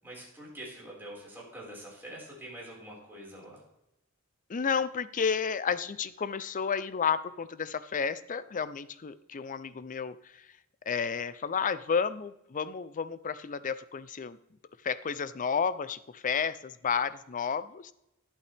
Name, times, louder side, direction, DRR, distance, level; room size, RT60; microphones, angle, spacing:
voice 1, 0.0-3.6, right 1 dB, 10° right, -5 dB, 4.8 m, -45 dB
voice 2, 4.5-10.4 10.9-14.4 14.8-17.9, left 6 dB, 35° left, 15 dB, 0.5 m, -31 dB
11.5 x 11.5 x 3.4 m, 0.86 s
head